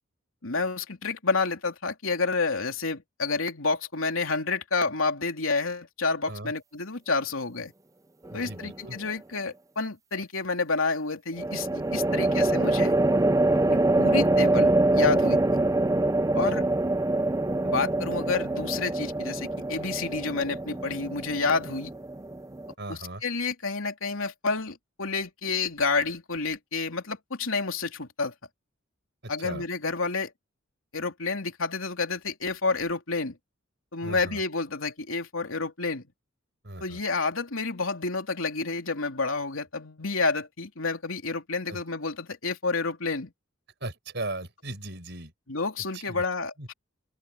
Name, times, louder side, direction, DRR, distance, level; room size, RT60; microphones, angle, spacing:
voice 1, 0.4-7.7 8.3-12.9 13.7-15.6 16.3-16.6 17.6-21.9 22.9-28.3 29.3-30.3 30.9-33.4 33.9-36.0 36.8-43.3 45.5-46.7, left 4 dB, 85° left, 3.2 m, -29 dB
sound 1, 8.3-8.8 11.4-22.7, right 2 dB, 15° right, 0.6 m, -25 dB
voice 2, 8.3-9.0 16.3-16.6 22.8-23.2 29.2-29.7 34.0-34.4 36.6-37.0 41.7-41.8 43.8-45.3 45.9-46.2 46.6-46.7, right 2 dB, 55° right, 5.9 m, -38 dB
open air
head